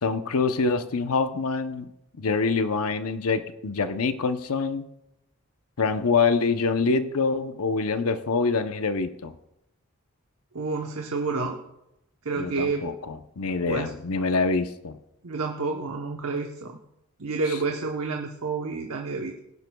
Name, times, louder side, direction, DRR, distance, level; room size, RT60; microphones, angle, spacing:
voice 1, 0.0-1.9 2.2-4.8 5.8-9.3 12.3-15.0, left 4 dB, 80° left, 9 dB, 0.7 m, -25 dB
voice 2, 10.5-11.6 12.2-12.8 13.7-13.9 15.2-16.8 17.2-19.4, right 4 dB, 75° right, 2 dB, 0.9 m, -29 dB
19.0 x 10.5 x 2.3 m, 0.86 s
head